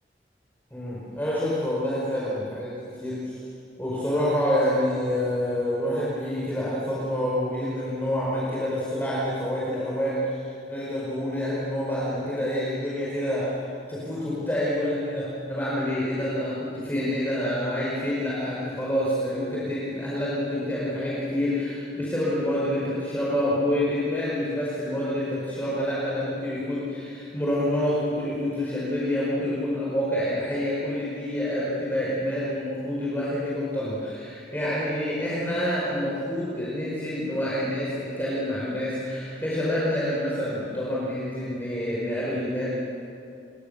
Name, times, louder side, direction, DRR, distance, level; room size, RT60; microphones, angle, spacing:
voice 1, 0.7-3.4 3.8-13.6 13.9-42.7, left 1 dB, 10° left, -7 dB, 5.2 m, -27 dB
29.5 x 24.0 x 6.9 m, 2.6 s
head